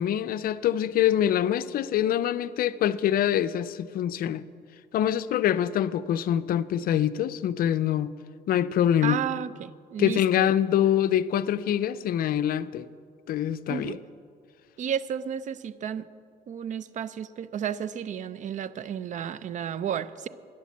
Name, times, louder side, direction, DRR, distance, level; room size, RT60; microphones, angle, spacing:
voice 1, 0.0-4.4 4.9-8.1 8.5-9.2 10.0-12.9 13.3-14.0, left 10 dB, 60° left, 0.5 m, -25 dB
voice 2, 9.0-10.5 13.7-14.0 14.8-16.1 16.5-20.3, right 8 dB, 45° right, 0.5 m, -32 dB
12.5 x 10.0 x 7.3 m
cardioid pair, 110°, 17 cm